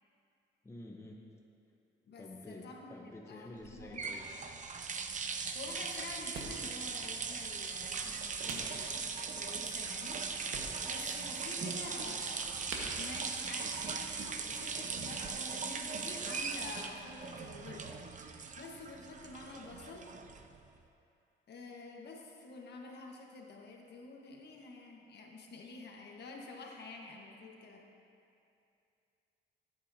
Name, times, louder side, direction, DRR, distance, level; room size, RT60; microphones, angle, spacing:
voice 1, 0.6-1.2 2.0-4.3, left 1 dB, 15° left, 0 dB, 0.9 m, -49 dB
voice 2, 2.1-4.1 5.3-9.0 9.3-12.5 13.0-20.1 21.5-27.8, left 3 dB, 60° left, 0 dB, 1.3 m, -49 dB
sound 1, 3.6-20.7, right 5 dB, 40° right, 0.6 m, -39 dB
sound 2, 5.6-14.4, right 3 dB, 90° right, 1.5 m, -50 dB
15.0 x 8.6 x 2.8 m, 2.6 s
cardioid pair, 90°, 20 cm